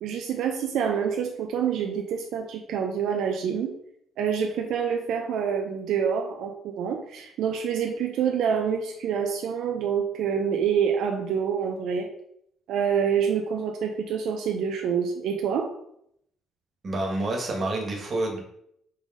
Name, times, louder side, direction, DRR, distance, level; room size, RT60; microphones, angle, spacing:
voice 1, 0.0-3.7 4.2-12.1 12.7-15.7, right 7 dB, 70° right, 2 dB, 0.6 m, -27 dB
voice 2, 16.8-18.4, right 2 dB, 30° right, 0 dB, 1.5 m, -28 dB
5.5 x 3.4 x 5.1 m, 0.74 s
cardioid pair, 155°, 0 cm